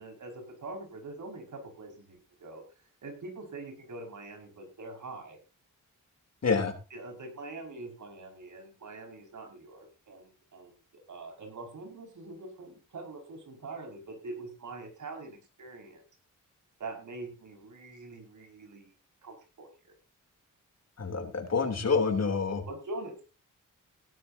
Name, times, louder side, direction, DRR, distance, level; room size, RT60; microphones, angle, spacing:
voice 1, 0.0-2.6 3.0-5.4 6.9-16.0 16.8-18.9 19.2-19.9 22.6-23.2, right 2 dB, 65° right, 3 dB, 5.8 m, -44 dB
voice 2, 6.4-6.7 21.0-22.6, left 5 dB, 55° left, 6 dB, 3.2 m, -27 dB
17.0 x 12.5 x 2.8 m, 0.31 s
cardioid pair, 95°, 32 cm